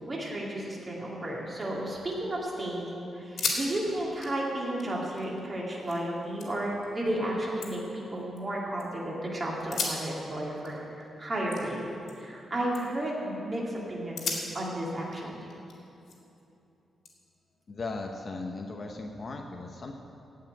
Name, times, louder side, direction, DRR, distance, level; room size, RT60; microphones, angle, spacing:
voice 1, 0.1-11.8 12.2-15.4, right 1 dB, 25° right, -4 dB, 2.4 m, -33 dB
sound 1, 1.6-2.4 2.7-2.8 3.2-3.7 3.9-6.0 6.4-6.9 7.3-8.8 9.6-12.4 12.7-13.1 13.6-13.7 14.1-16.4 17.0-18.2, left 4 dB, 60° left, 2.3 m, -38 dB
voice 2, 17.7-19.9, left 3 dB, 35° left, 2 dB, 0.8 m, -37 dB
16.5 x 5.7 x 9.0 m, 2.9 s
wide cardioid pair, 170°, 0 cm